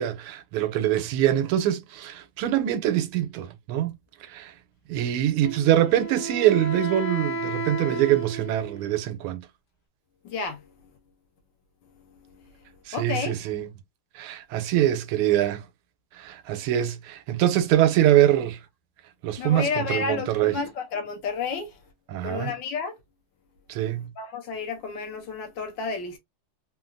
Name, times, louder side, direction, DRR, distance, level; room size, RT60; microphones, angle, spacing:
voice 1, 0.0-3.9 4.3-4.5 4.9-9.5 12.9-13.7 14.1-15.6 16.2-18.6 19.2-20.6 22.1-22.5 23.7-24.1, right 12 dB, 90° right, 1.5 m, -24 dB
Wind instrument woodwind instrument, 5.4-9.0, right 3 dB, 55° left, 0.9 m, -33 dB
voice 2, 10.2-10.6 12.9-13.3 19.4-21.7 22.2-22.9 24.2-26.2, left 5 dB, 70° left, 1.3 m, -31 dB
3.8 x 2.2 x 2.5 m
omnidirectional pair, 2.3 m